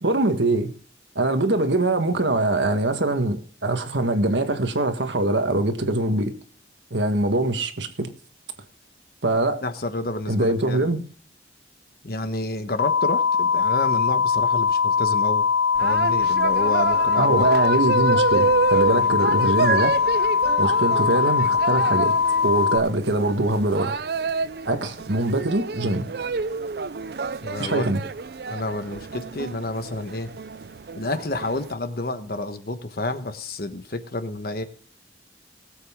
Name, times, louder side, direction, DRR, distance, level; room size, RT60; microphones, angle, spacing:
voice 1, 0.0-0.7 1.1-6.3 6.9-8.1 9.2-9.6 10.3-11.0 17.2-19.9 20.6-22.1 22.4-24.0 24.6-26.1 27.6-28.0, right 2 dB, 80° right, 1.6 m, -23 dB
voice 2, 9.6-11.0 12.0-15.5 15.8-17.4 18.9-19.4 27.4-28.0 28.5-30.3 30.9-34.6, left 2 dB, 55° left, 1.2 m, -30 dB
sound 1, 12.8-22.8, left 6 dB, 80° left, 1.1 m, -21 dB
sound 2, 15.8-31.7, right 5 dB, 55° right, 0.5 m, -29 dB
19.0 x 8.1 x 3.6 m
head